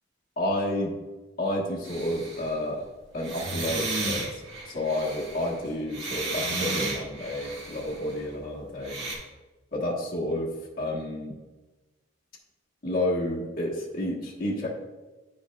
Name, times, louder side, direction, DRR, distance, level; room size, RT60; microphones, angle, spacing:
voice 1, 0.4-0.9 1.4-2.8 3.1-9.0 9.7-11.4 12.8-14.7, left 1 dB, 50° left, -4 dB, 1.2 m, -30 dB
sound 1, 1.8-2.5 3.2-8.2 8.8-9.1, right 3 dB, 70° right, 1.7 m, -33 dB
9.7 x 5.2 x 2.3 m, 1.2 s
head